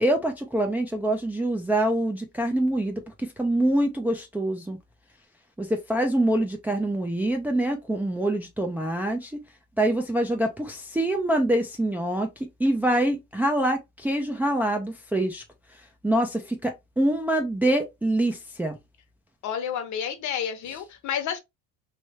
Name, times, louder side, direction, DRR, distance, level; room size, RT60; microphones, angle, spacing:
voice 1, 0.0-4.8 5.6-9.4 9.8-15.4 16.0-18.8, right 1 dB, 5° right, 0.4 m, -25 dB
voice 2, 19.4-21.4, left 8 dB, 55° left, 1.0 m, -30 dB
3.2 x 2.6 x 3.0 m
cardioid pair, 120°, 35 cm